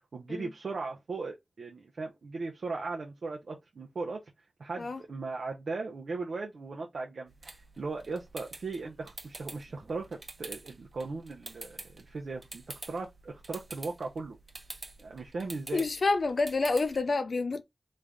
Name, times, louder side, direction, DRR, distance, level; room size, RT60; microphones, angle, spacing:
voice 1, 0.1-4.2 4.6-14.4 15.0-15.9, right 3 dB, 90° right, 0.6 m, -38 dB
sound 1, 7.3-17.0, right 2 dB, 55° right, 0.9 m, -48 dB
voice 2, 15.7-17.6, left 3 dB, 75° left, 0.5 m, -28 dB
3.2 x 2.5 x 3.4 m
cardioid pair, 50°, 0 cm